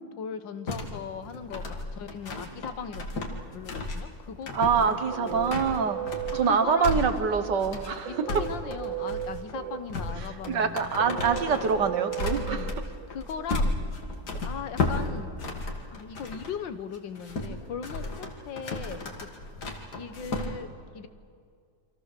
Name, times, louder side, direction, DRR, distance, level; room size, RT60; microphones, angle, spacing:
voice 1, 0.2-5.6 6.3-7.1 8.1-10.9 12.3-12.7 13.1-13.8 14.5-15.3 15.9-19.3 20.0-20.7 20.9-21.1, left 7 dB, 90° left, 10 dB, 1.9 m, -39 dB
sound 1, 0.7-16.5 16.9-20.5, left 2 dB, 65° left, 2.6 m, -34 dB
voice 2, 4.5-6.0 6.3-8.2 10.5-12.7, right 6 dB, 70° right, 8 dB, 2.0 m, -25 dB
sound 2, 4.8-13.5, right 10 dB, 90° right, 1.8 m, -37 dB
28.5 x 24.5 x 6.8 m, 2.2 s
omnidirectional pair, 1.9 m